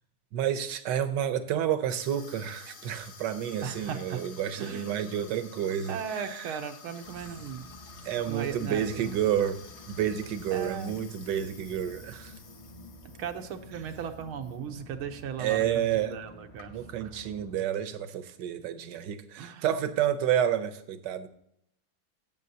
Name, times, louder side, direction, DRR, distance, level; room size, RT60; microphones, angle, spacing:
voice 1, 0.3-6.6 8.0-9.6 9.9-12.3 15.4-16.2 16.7-21.3, right 10 dB, 65° right, 11 dB, 1.3 m, -30 dB
Water tap faucet / Sink (filling or washing), 1.9-14.6 14.9-15.2 15.9-17.1, left 6 dB, 55° left, 1.5 m, -51 dB
voice 2, 3.6-4.2 4.6-5.1 5.9-7.6 8.3-9.2 10.5-11.0 13.2-16.7 17.0-17.1 19.4-19.6, right 7 dB, 90° right, 6 dB, 1.7 m, -37 dB
sound 1, 7.0-17.6, equal, 25° left, 0.8 m, -50 dB
16.5 x 7.1 x 2.8 m, 0.74 s
omnidirectional pair, 2.2 m